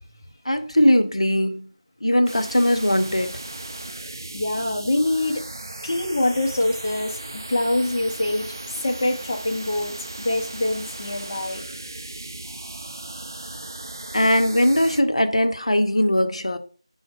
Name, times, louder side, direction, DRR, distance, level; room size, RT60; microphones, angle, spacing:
voice 1, 0.4-1.7 2.0-3.4 14.1-16.6, left 1 dB, 75° left, 0.6 m, -20 dB
sound 1, 2.3-15.0, right 2 dB, 35° right, 0.3 m, -37 dB
voice 2, 4.3-5.4 5.8-11.6, left 1 dB, 25° left, 0.5 m, -25 dB
5.9 x 2.0 x 3.3 m
figure-of-eight pair, 170°, 3 cm